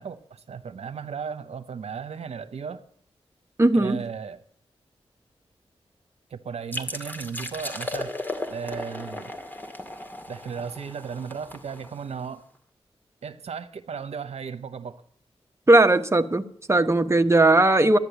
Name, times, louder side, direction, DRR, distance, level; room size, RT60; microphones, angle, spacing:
voice 1, 0.0-2.8 3.7-4.4 6.3-8.1 8.5-9.3 10.3-12.4 13.2-15.0, right 6 dB, 80° right, 0.9 m, -35 dB
voice 2, 3.6-4.1 15.7-18.0, right 2 dB, 25° right, 1.1 m, -18 dB
sound 1, 6.7-12.3, left 1 dB, 15° left, 2.1 m, -36 dB
12.5 x 10.5 x 8.1 m
cardioid pair, 45°, 11 cm